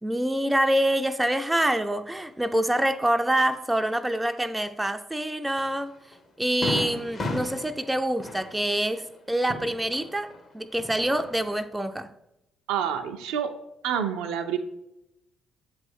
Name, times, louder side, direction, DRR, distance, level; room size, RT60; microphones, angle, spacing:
voice 1, 0.0-6.0 6.4-12.1, right 1 dB, 10° right, 0.4 m, -26 dB
Fireworks, 5.6-5.7 6.1-6.2 6.6-10.4 10.7-11.6, left 2 dB, 45° left, 1.2 m, -35 dB
voice 2, 12.7-13.5 13.8-14.6, right 8 dB, 70° right, 0.4 m, -28 dB
7.5 x 3.1 x 5.3 m
hypercardioid pair, 45°, 0 cm